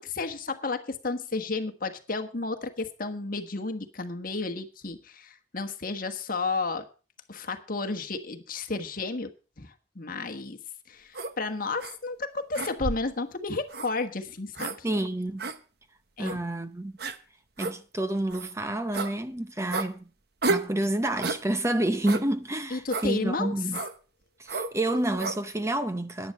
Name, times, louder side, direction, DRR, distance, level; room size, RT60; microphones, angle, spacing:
voice 1, 0.0-6.9 7.3-9.3 9.6-10.6 10.9-14.9 16.2-16.4 22.7-23.5, left 3 dB, 50° left, 1.4 m, -32 dB
sound 1, 11.1-11.3 11.8-12.0 12.5-13.1 13.7-13.9 14.6-14.8 15.4-15.6 16.2-16.4 17.0-17.2 17.6-17.8 18.3-18.5 18.9-19.1 19.7-19.9 20.4-20.7 21.2-21.4 22.1-22.3 22.9-23.1 23.7-23.9 24.5-24.7 25.2-25.4, right 3 dB, 55° right, 1.0 m, -31 dB
voice 2, 14.8-15.5 16.2-16.9 17.6-20.1 20.5-23.8 24.4-26.3, right 1 dB, 15° right, 0.7 m, -29 dB
10.5 x 10.5 x 5.5 m
head